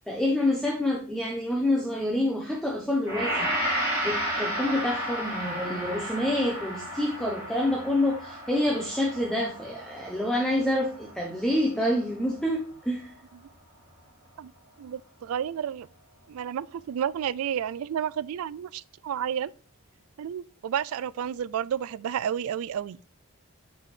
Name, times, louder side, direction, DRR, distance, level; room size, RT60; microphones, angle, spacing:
voice 1, 0.1-13.2, left 1 dB, 5° left, 0.7 m, -27 dB
Gong, 3.1-12.3, equal, 15° right, 3.0 m, -33 dB
voice 2, 14.8-15.9 16.3-19.5 20.2-23.0, right 9 dB, 75° right, 0.3 m, -31 dB
8.1 x 4.5 x 3.2 m
head